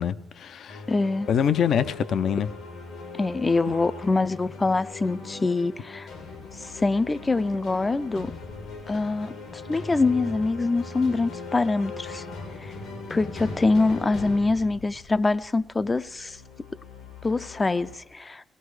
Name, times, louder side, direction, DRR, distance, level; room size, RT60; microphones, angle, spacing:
voice 1, 0.0-0.8 1.3-2.5, left 8 dB, 65° left, 0.6 m, -25 dB
sound 1, 0.7-18.0, left 3 dB, 80° left, 2.5 m, -40 dB
voice 2, 0.9-1.3 3.2-6.1 6.6-8.3 8.9-12.2 12.6-12.7 13.1-16.4 17.2-18.4, left 3 dB, 25° left, 0.5 m, -24 dB
17.0 x 16.5 x 4.8 m
cardioid pair, 90°, 0 cm